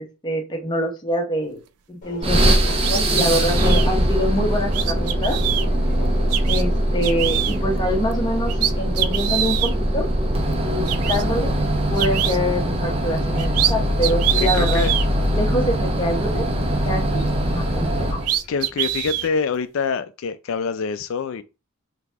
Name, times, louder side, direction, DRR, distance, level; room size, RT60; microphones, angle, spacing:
voice 1, 0.0-1.6 1.9-2.5 2.9-5.4 6.5-10.1 10.6-11.5 11.9-14.8 15.3-16.5 16.8-17.2 17.5-18.2, equal, 20° left, 0.9 m, -25 dB
Subway metro underground, 2.0-19.3, left 1 dB, 35° left, 1.2 m, -40 dB
sound 1, 2.2-18.4, right 1 dB, 25° right, 0.6 m, -22 dB
sound 2, 2.8-3.9 4.7-5.7 6.3-6.6 7.0-7.6 8.1-8.2 8.5-9.7 10.5-10.6 10.9-11.2 12.0-12.4 13.2-13.7 14.0-15.1 17.8-17.9 18.2-19.3, right 12 dB, 90° right, 0.4 m, -24 dB
voice 2, 14.4-14.9 18.5-21.4, left 5 dB, 65° left, 0.3 m, -25 dB
3.9 x 2.8 x 3.4 m
head